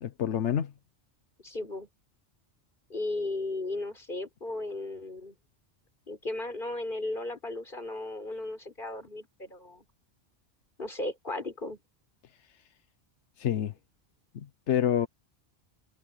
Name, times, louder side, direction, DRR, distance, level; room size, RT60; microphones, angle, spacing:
voice 1, 0.0-0.7 13.4-13.7 14.3-15.1, left 9 dB, 90° left, 1.2 m, -28 dB
voice 2, 1.4-1.9 2.9-5.4 6.1-9.8 10.8-11.8, left 2 dB, 50° left, 5.2 m, -35 dB
omnidirectional pair, 1.1 m